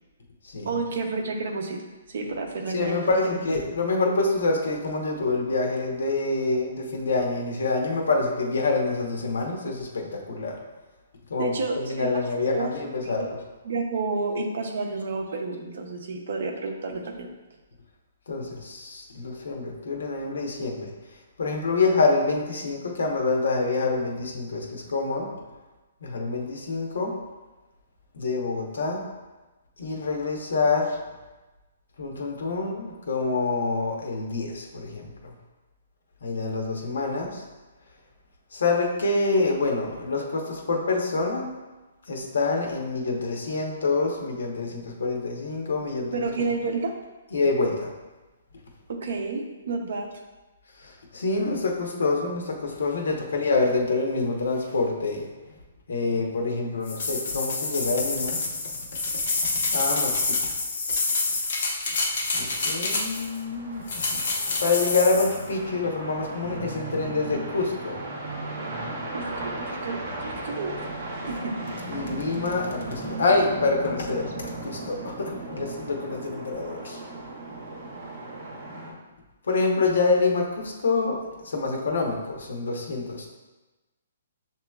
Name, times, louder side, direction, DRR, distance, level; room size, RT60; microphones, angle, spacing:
voice 1, 0.6-1.8 2.1-3.5 11.4-12.2 12.5-12.7 13.0-13.4 13.6-17.3 46.1-46.9 48.9-50.2 69.1-70.9 71.3-71.5, right 3 dB, 55° right, 2 dB, 0.7 m, -30 dB
voice 2, 2.7-10.6 11.3-13.4 18.3-20.9 21.4-25.3 26.0-27.1 28.1-29.0 29.8-30.9 32.0-35.3 36.2-37.4 38.5-41.6 42.1-46.3 47.3-47.9 51.1-55.3 55.9-58.4 59.7-60.5 62.3-64.2 64.5-68.0 71.9-77.0 79.5-83.3, left 3 dB, 75° left, 1 dB, 0.9 m, -26 dB
sound 1, 56.8-63.4 63.9-65.4, left 3 dB, 45° left, 0.7 m, -27 dB
sound 2, 62.3-78.9, right 2 dB, 30° right, 0.8 m, -36 dB
6.8 x 2.9 x 2.3 m, 1.1 s
hypercardioid pair, 175°, 0 cm